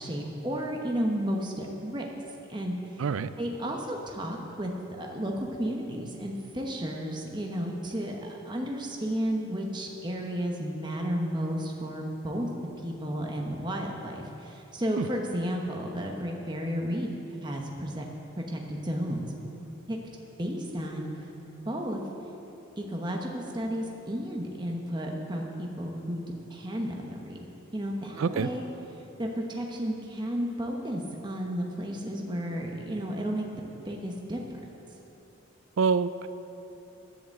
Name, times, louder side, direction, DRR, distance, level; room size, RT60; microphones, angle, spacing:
voice 1, 0.0-2.0 2.5-3.0 3.4-12.5 12.8-17.1 17.4-18.1 18.4-19.3 19.9-20.0 20.4-21.1 21.6-22.0 22.8-26.2 26.5-27.5 27.7-28.7 29.2-33.5 33.8-34.4, equal, 20° right, 0 dB, 1.0 m, -32 dB
voice 2, 28.2-28.5 35.8-36.3, right 5 dB, 85° right, 13 dB, 0.4 m, -26 dB
10.5 x 7.9 x 7.7 m, 3.0 s
head